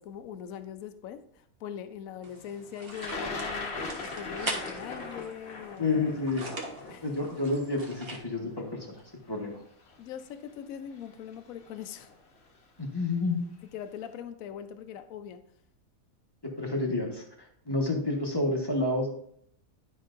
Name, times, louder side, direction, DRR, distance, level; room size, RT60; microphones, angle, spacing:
voice 1, 0.0-5.9 6.9-7.1 10.0-12.1 13.7-15.4, left 9 dB, 75° left, 9 dB, 1.0 m, -41 dB
sound 1, 2.2-8.2, right 2 dB, 45° right, 1.4 m, -41 dB
Thunder, 2.9-8.9 9.9-10.0 11.1-11.3 11.6-12.1, left 3 dB, 50° left, 1.2 m, -39 dB
voice 2, 5.8-6.5 7.0-9.0 9.3-9.6 12.8-13.5 16.6-19.1, left 2 dB, 20° left, 0 dB, 1.2 m, -29 dB
11.0 x 5.4 x 2.5 m, 0.67 s
omnidirectional pair, 1.5 m